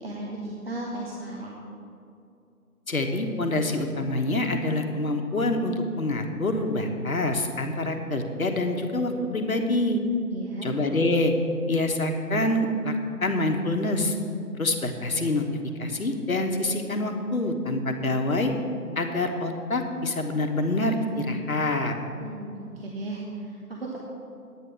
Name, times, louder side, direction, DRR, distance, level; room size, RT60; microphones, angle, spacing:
voice 1, 0.0-1.6 10.3-10.7 22.2-24.0, right 2 dB, 40° right, -3 dB, 1.2 m, -35 dB
voice 2, 2.9-10.0 10.6-11.3 11.7-12.9 13.2-14.1 14.6-15.4 15.8-18.5 19.0-21.9, left 2 dB, 60° left, 4 dB, 1.3 m, -26 dB
9.8 x 9.2 x 6.0 m, 2.5 s
figure-of-eight pair, 155°, 47 cm